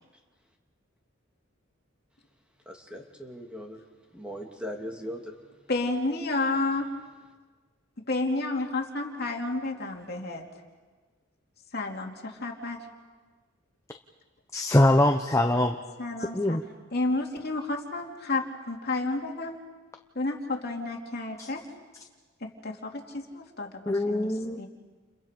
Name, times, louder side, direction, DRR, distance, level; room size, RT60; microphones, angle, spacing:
voice 1, 2.7-3.8 4.1-5.3, equal, 5° right, 1 dB, 2.6 m, -39 dB
voice 2, 5.7-6.9 8.1-10.4 11.7-12.8 16.0-16.6 16.9-19.6 20.1-21.6 22.4-24.3 24.6-24.7, left 2 dB, 50° left, 1 dB, 2.8 m, -31 dB
voice 3, 14.5-15.8 16.3-16.6 21.4-21.5 23.9-24.7, left 1 dB, 15° left, 4 dB, 0.9 m, -23 dB
30.0 x 30.0 x 5.3 m, 1.4 s
head